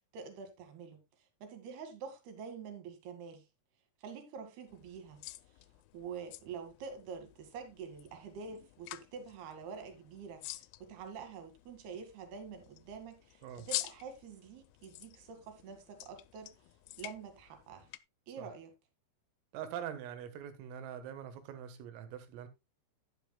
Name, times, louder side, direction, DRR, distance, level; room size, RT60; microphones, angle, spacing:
voice 1, 0.1-1.0 1.4-3.5 4.0-5.2 5.9-10.4 10.8-16.5 17.0-17.9 18.3-18.7, right 6 dB, 60° right, 3.6 m, -46 dB
sound 1, 4.7-18.0, left 18 dB, 80° left, 2.9 m, -48 dB
voice 2, 19.5-22.5, right 9 dB, 85° right, 4.1 m, -43 dB
11.5 x 10.0 x 2.3 m
omnidirectional pair, 5.7 m